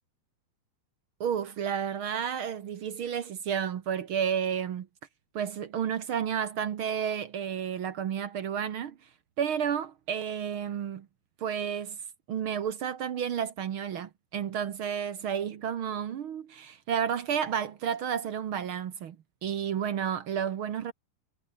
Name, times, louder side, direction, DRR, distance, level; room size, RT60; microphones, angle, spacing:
voice 1, 1.2-4.9 5.3-9.0 9.4-11.1 11.4-12.0 12.3-19.2 19.4-20.9, right 8 dB, 60° right, 1.4 m, -31 dB
omnidirectional pair, 3.9 m